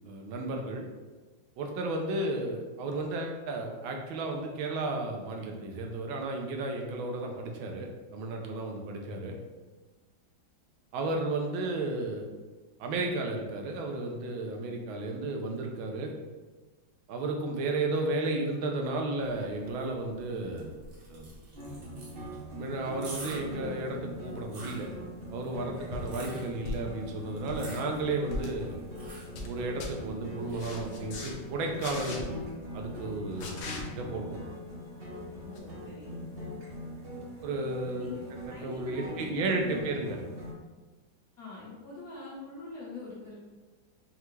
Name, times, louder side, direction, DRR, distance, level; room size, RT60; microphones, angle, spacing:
voice 1, 0.0-0.9 1.6-9.3 10.9-12.3 12.8-16.1 17.1-20.7 21.1-21.3 22.5-24.9 25.3-28.7 29.5-32.2 32.7-33.6 33.9-34.4 37.4-38.1 38.5-40.2, right 2 dB, 80° right, 2 dB, 1.4 m, -33 dB
sound 1, 19.2-32.1, right 2 dB, 65° right, 1.5 m, -50 dB
sound 2, 21.6-40.5, equal, 45° right, 0.8 m, -42 dB
footsteps concrete, 25.9-26.1 26.6-27.0 27.3-27.7 28.3-28.5 29.0-29.5 29.8-29.9 30.6-31.3 31.8-32.2 33.4-33.8 35.5-35.6, left 2 dB, 70° left, 0.8 m, -38 dB
voice 2, 35.3-36.2 37.9-38.2 38.5-40.1 41.4-43.4, left 4 dB, 50° left, -8 dB, 1.6 m, -43 dB
5.6 x 2.3 x 3.1 m, 1.3 s
omnidirectional pair, 2.2 m